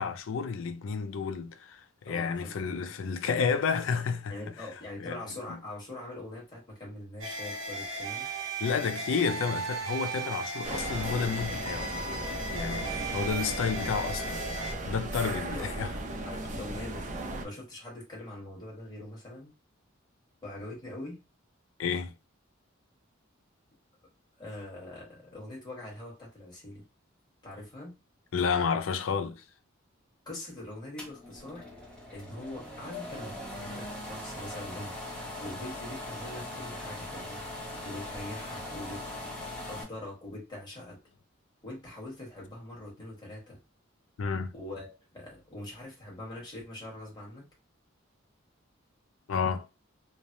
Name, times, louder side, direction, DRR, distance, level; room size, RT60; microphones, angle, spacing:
voice 1, 0.0-4.3 5.0-5.2 5.5-5.6 8.6-11.9 12.5-14.5 14.9-15.9 21.8-22.1 28.3-29.4 44.2-44.5 49.3-49.7, left 5 dB, 70° left, 0.4 m, -31 dB
voice 2, 2.1-2.5 4.3-8.3 15.2-17.1 17.4-19.5 20.4-21.2 24.4-26.8 27.4-28.0 30.2-31.7 32.1-37.4 37.8-39.0 39.7-41.0 41.6-43.6 44.5-47.5, left 1 dB, 20° left, 1.3 m, -43 dB
sound 1, 7.2-14.7, right 2 dB, 80° right, 0.9 m, -36 dB
sound 2, 10.6-17.5, right 2 dB, 40° right, 0.5 m, -36 dB
sound 3, 31.0-39.8, left 1 dB, 5° left, 0.8 m, -40 dB
3.1 x 2.0 x 2.6 m
head